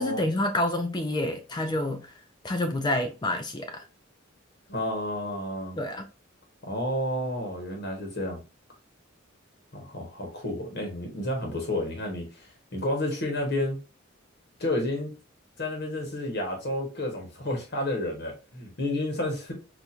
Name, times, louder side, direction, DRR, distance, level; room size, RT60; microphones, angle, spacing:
voice 1, 0.0-2.0 2.4-3.8 5.8-6.0, left 1 dB, 20° left, 0.4 m, -28 dB
voice 2, 4.7-5.8 6.6-8.4 9.7-13.8 14.6-15.1 15.6-19.5, left 1 dB, 50° left, 1.1 m, -31 dB
4.2 x 2.5 x 2.4 m
head